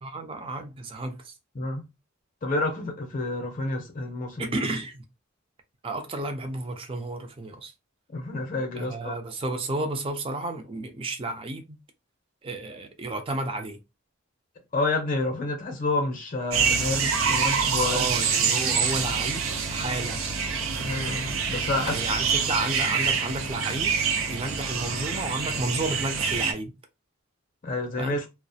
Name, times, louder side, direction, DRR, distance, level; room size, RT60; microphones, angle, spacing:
voice 1, 0.0-1.3 4.4-5.0 5.8-7.7 8.8-11.8 12.4-13.8 17.2-17.3 17.8-19.4 19.7-20.2 21.7-24.0 24.3-26.7 28.0-28.2, right 2 dB, 25° right, 0.4 m, -32 dB
voice 2, 1.5-1.9 2.4-4.5 8.1-9.2 14.7-18.0 20.8-22.0 27.6-28.2, left 2 dB, 40° left, 0.5 m, -29 dB
sound 1, 16.5-26.5, right 5 dB, 85° right, 0.5 m, -26 dB
2.3 x 2.0 x 2.7 m
head